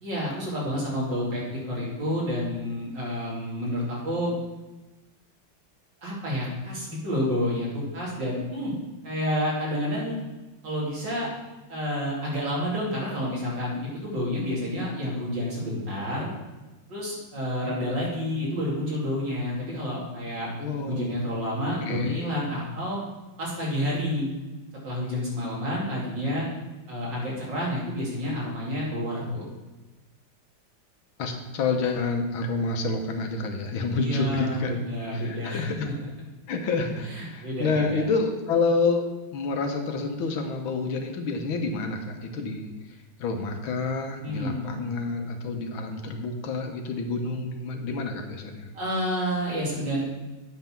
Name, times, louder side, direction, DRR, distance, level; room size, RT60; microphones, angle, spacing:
voice 1, 0.0-4.4 6.0-8.7 9.0-10.2 10.6-11.3 11.7-16.3 16.9-23.0 23.4-24.3 24.8-26.4 26.9-29.5 33.9-35.9 37.0-38.0 44.2-44.6 48.7-50.0, equal, 65° right, -5 dB, 3.4 m, -29 dB
voice 2, 20.6-21.3 21.8-22.3 31.2-34.8 35.1-35.9 36.5-42.7 43.2-48.7, left 3 dB, 85° left, 4 dB, 1.8 m, -28 dB
8.8 x 5.7 x 5.9 m, 1.1 s
omnidirectional pair, 2.1 m